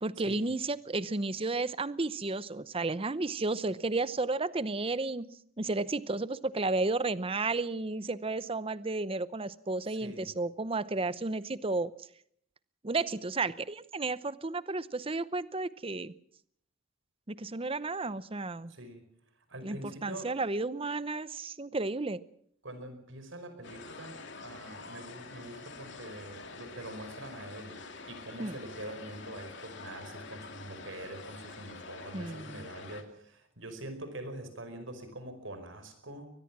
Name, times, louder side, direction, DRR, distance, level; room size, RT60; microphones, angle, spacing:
voice 1, 0.0-11.9 12.8-16.1 17.3-18.7 19.6-19.8 20.0-22.2 28.4-28.6 32.1-32.7, right 3 dB, 30° right, 16 dB, 0.8 m, -32 dB
voice 2, 9.9-10.3 18.7-19.0 19.5-20.3 22.6-36.3, right 1 dB, 70° right, 9 dB, 5.0 m, -44 dB
sound 1, 23.6-33.0, left 4 dB, 60° left, 2.7 m, -47 dB
23.0 x 20.0 x 6.1 m, 0.65 s
head